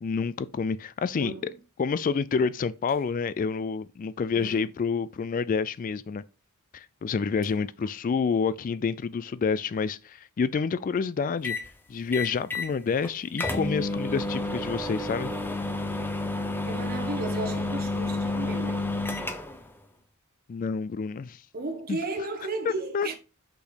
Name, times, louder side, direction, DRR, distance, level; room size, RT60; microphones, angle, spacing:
voice 1, 0.0-1.5 1.8-6.2 6.7-11.6 11.9-15.3 20.5-21.4 21.9-22.0 22.9-23.1, left 5 dB, 40° left, 0.3 m, -28 dB
voice 2, 1.1-1.6 4.3-4.7 16.6-19.0 21.5-23.1, right 2 dB, 45° right, 1.4 m, -34 dB
sound 1, 11.4-11.7 12.1-12.7 13.0-13.1 13.4-19.7, left 2 dB, 10° left, 0.7 m, -30 dB
6.2 x 5.7 x 4.1 m
head